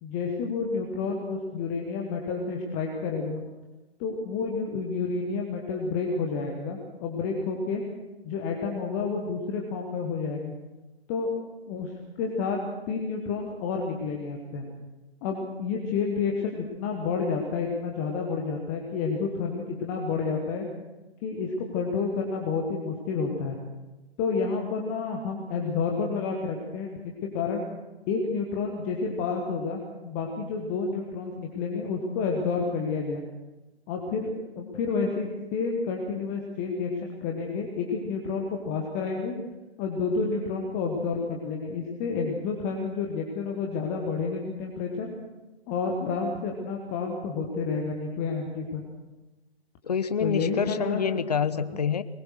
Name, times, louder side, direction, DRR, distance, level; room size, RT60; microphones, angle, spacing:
voice 1, 0.0-3.4 4.0-7.8 8.2-10.6 11.1-11.3 11.7-11.9 12.2-12.6 12.9-14.6 15.2-20.7 21.2-23.6 24.2-27.6 28.1-33.2 33.9-39.3 39.8-45.1 45.7-48.8 50.2-51.0 51.5-51.6, left 4 dB, 15° left, 1 dB, 1.3 m, -30 dB
voice 2, 49.8-52.0, left 7 dB, 40° left, 13 dB, 0.9 m, -27 dB
21.5 x 20.0 x 6.5 m, 1.1 s
figure-of-eight pair, 145°, 32 cm